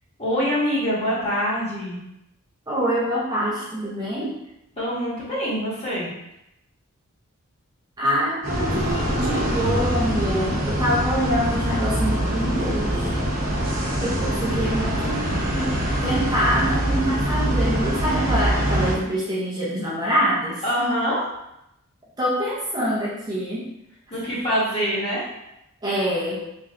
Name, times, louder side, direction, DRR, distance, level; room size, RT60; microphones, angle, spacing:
voice 1, 0.2-2.0 4.8-6.1 20.6-21.2 24.1-25.3, equal, 25° left, -9 dB, 1.5 m, -24 dB
voice 2, 2.7-4.4 8.0-13.2 14.0-20.6 22.2-23.7 25.8-26.4, equal, 20° right, -8 dB, 0.7 m, -25 dB
sound 1, 8.4-18.9, right 1 dB, 45° right, 1.0 m, -24 dB
3.3 x 2.6 x 3.7 m, 0.85 s
head